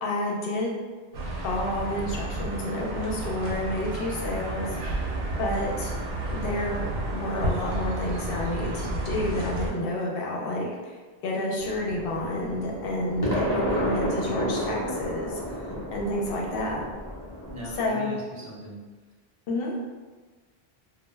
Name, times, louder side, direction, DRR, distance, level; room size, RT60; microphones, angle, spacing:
voice 1, 0.0-0.8 1.4-5.0 5.4-5.9 6.3-11.0 11.2-16.8 17.8-18.1 19.5-19.7, left 1 dB, 65° left, -2 dB, 0.7 m, -30 dB
sound 1, 1.1-9.7, right 1 dB, 70° right, 0.8 m, -31 dB
sound 2, 11.6-17.9, equal, 25° left, 0.6 m, -31 dB
voice 2, 17.5-18.8, equal, 40° right, -5 dB, 0.4 m, -39 dB
2.1 x 2.1 x 3.1 m, 1.4 s
omnidirectional pair, 1.1 m